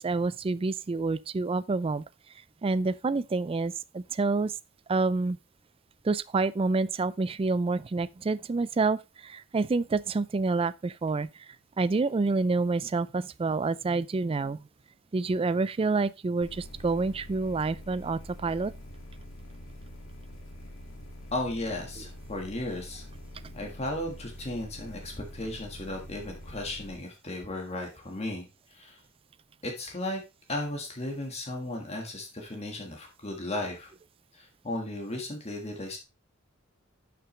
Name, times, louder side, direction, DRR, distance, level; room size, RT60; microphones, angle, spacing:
voice 1, 0.0-2.0 2.6-4.5 4.9-5.4 6.0-11.3 11.8-14.6 15.1-18.7, right 3 dB, 25° right, 0.3 m, -28 dB
sound 1, 16.4-27.0, left 1 dB, 70° left, 2.3 m, -45 dB
voice 2, 21.3-23.0 23.5-29.0 29.6-30.2 30.5-33.9 34.3-36.0, left 1 dB, 30° left, 1.6 m, -35 dB
11.0 x 6.0 x 3.2 m
head